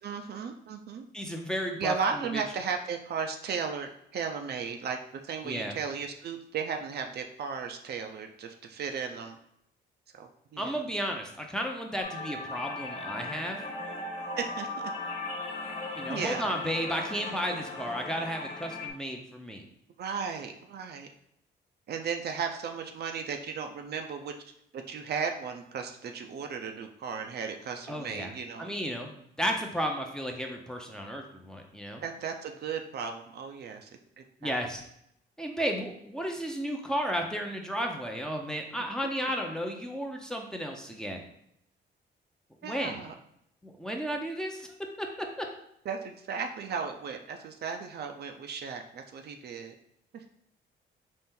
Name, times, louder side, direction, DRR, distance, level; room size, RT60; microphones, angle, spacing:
voice 1, 0.0-1.0 1.8-5.0 5.2-9.4 10.1-10.8 14.4-14.9 16.1-16.5 20.0-21.1 21.9-24.3 24.7-28.7 32.0-33.9 34.2-34.6 42.6-43.1 45.9-49.7 50.1-50.2, right 6 dB, 55° right, 4 dB, 0.5 m, -35 dB
voice 2, 1.1-1.9 2.3-2.4 5.4-5.8 10.6-13.6 15.9-19.6 27.9-28.3 28.6-29.1 29.4-32.0 34.4-34.8 35.4-41.2 42.6-43.0 43.6-45.5, equal, 5° left, 2 dB, 0.6 m, -33 dB
sound 1, 12.0-18.9, left 2 dB, 35° left, 0.8 m, -38 dB
4.2 x 2.5 x 3.7 m, 0.75 s
cardioid pair, 90°, 20 cm